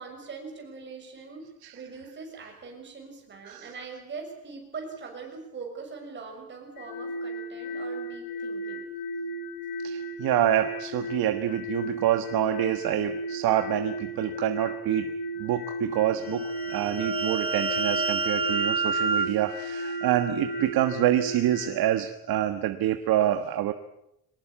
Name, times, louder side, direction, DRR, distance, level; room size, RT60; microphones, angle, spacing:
voice 1, 0.0-8.9, right 4 dB, 30° right, 2 dB, 6.4 m, -42 dB
sound 1, 6.8-21.7, equal, 85° left, 3.4 m, -35 dB
voice 2, 9.8-15.1 15.4-23.7, right 12 dB, 80° right, 8 dB, 1.4 m, -27 dB
sound 2, 16.3-20.8, right 4 dB, 15° right, 0.9 m, -30 dB
24.0 x 19.5 x 8.5 m, 0.82 s
cardioid pair, 180°, 36 cm